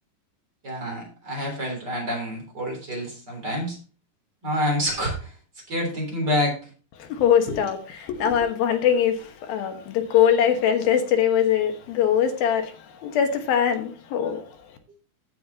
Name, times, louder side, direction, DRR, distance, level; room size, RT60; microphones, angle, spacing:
voice 1, 0.6-3.8 4.4-5.3 5.7-6.6 7.5-7.6, equal, 25° right, 3.7 m, -27 dB
voice 2, 7.1-14.4, left 8 dB, 75° left, 3.0 m, -22 dB
15.5 x 7.3 x 2.9 m
omnidirectional pair, 4.4 m